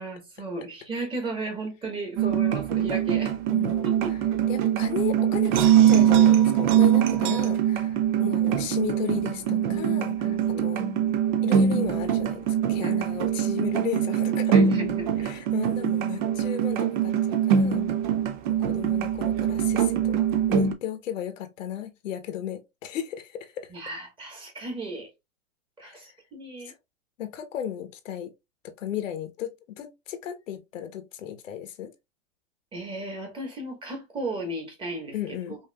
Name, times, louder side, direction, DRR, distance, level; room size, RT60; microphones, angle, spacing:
voice 1, 0.0-3.4 3.8-4.1 10.5-10.7 11.0-11.5 12.8-13.0 14.5-15.3 23.7-25.1 25.8-26.7 32.7-35.6, right 2 dB, 15° right, 1.3 m, -35 dB
sound 1, 2.2-20.7, right 9 dB, 40° right, 0.5 m, -23 dB
voice 2, 3.5-10.9 11.4-14.6 15.2-17.8 18.5-20.2 20.5-23.7 25.8-26.1 26.6-26.7 27.2-28.3 28.6-31.9 35.1-35.6, left 10 dB, 70° left, 1.0 m, -35 dB
5.6 x 2.6 x 2.2 m
hypercardioid pair, 150°, 39 cm